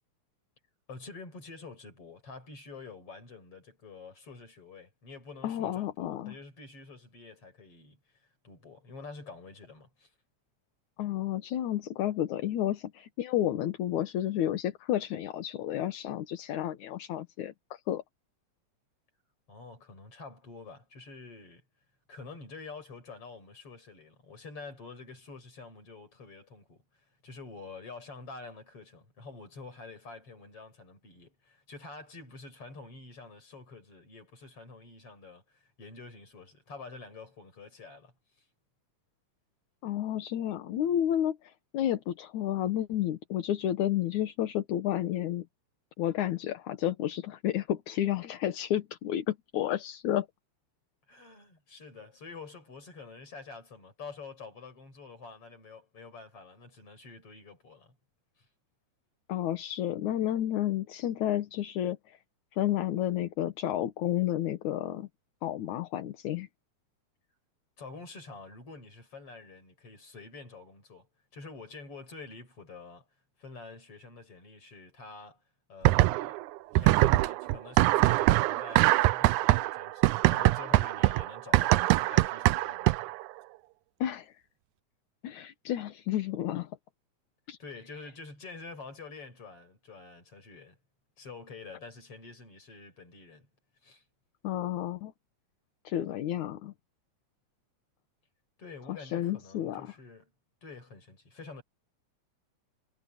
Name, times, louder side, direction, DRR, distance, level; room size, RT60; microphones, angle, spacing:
voice 1, 0.9-10.1 19.5-21.6 22.1-26.8 27.2-38.1 51.1-58.0 58.4-58.5 67.8-73.1 73.4-75.4 75.7-76.4 76.7-83.1 87.6-90.8 91.2-93.5 93.8-94.0 98.6-100.3 100.6-101.6, left 4 dB, 50° left, 7.3 m, -47 dB
voice 2, 5.4-6.3 11.0-18.0 39.8-45.5 46.0-50.3 59.3-62.2 62.5-65.1 65.4-66.5 84.0-84.3 85.2-86.7 87.5-87.6 94.4-95.1 95.8-96.7 98.9-99.9, left 12 dB, 80° left, 2.7 m, -31 dB
sound 1, 75.8-76.4 76.8-83.2, right 18 dB, 85° right, 2.1 m, -23 dB
omnidirectional pair, 3.4 m